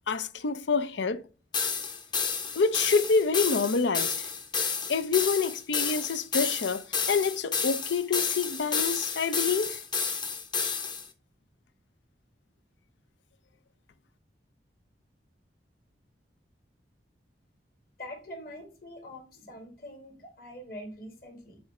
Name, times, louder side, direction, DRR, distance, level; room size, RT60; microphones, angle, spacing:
voice 1, 0.1-1.2 2.6-4.1 4.9-9.8, left 5 dB, 80° left, 0.6 m, -27 dB
sound 1, 1.5-11.1, left 5 dB, 25° left, 0.7 m, -30 dB
voice 2, 18.0-21.6, left 1 dB, 55° left, 2.2 m, -44 dB
7.0 x 3.3 x 4.9 m
head